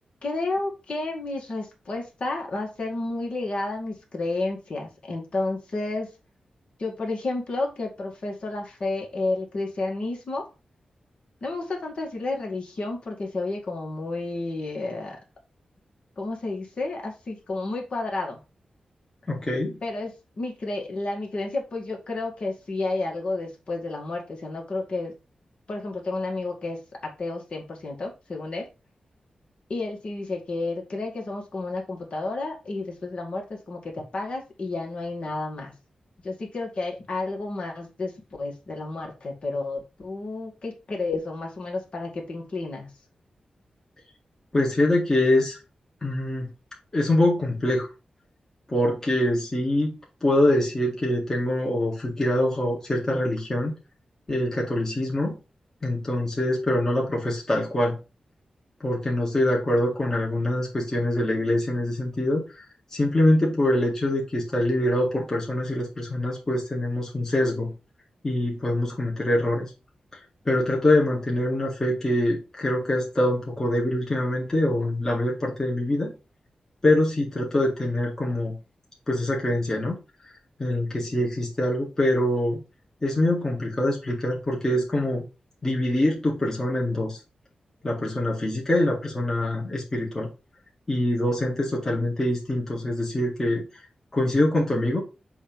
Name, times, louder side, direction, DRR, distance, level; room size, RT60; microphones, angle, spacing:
voice 1, 0.2-6.1 6.8-10.4 11.4-15.2 16.2-18.4 19.8-25.1 25.7-28.7 29.7-35.7 36.2-38.1 38.4-42.9, left 2 dB, 50° left, 0 dB, 2.1 m, -31 dB
voice 2, 19.3-19.8 44.5-45.6 46.0-46.5 46.9-47.9 48.7-49.9 50.2-53.7 54.3-55.3 55.8-58.0 58.8-62.6 62.9-67.7 68.2-69.7 70.5-76.1 76.8-78.6 79.1-79.9 80.6-82.6 83.0-85.2 85.6-87.2 87.8-90.3 90.9-93.6 94.1-95.0, left 1 dB, 20° left, -3 dB, 1.7 m, -24 dB
7.0 x 3.0 x 5.3 m, 0.28 s
wide cardioid pair, 165°, 2 cm